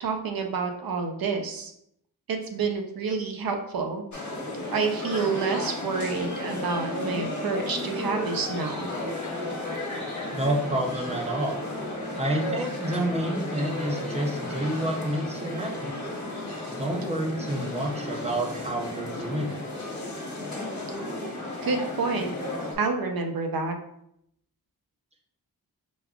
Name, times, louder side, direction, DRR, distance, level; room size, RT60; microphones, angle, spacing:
voice 1, 0.0-1.7 2.3-4.0 4.7-8.9 21.6-22.3 22.8-23.7, right 4 dB, 70° right, 4 dB, 0.6 m, -28 dB
sound 1, 4.1-22.8, left 1 dB, 50° left, 1.1 m, -34 dB
voice 2, 10.3-11.6 12.2-16.0 16.7-19.6, right 1 dB, 20° right, 1 dB, 0.6 m, -29 dB
sound 2, 11.1-16.2, right 1 dB, 80° left, 0.8 m, -45 dB
5.1 x 2.3 x 2.3 m, 0.73 s
wide cardioid pair, 125°, 37 cm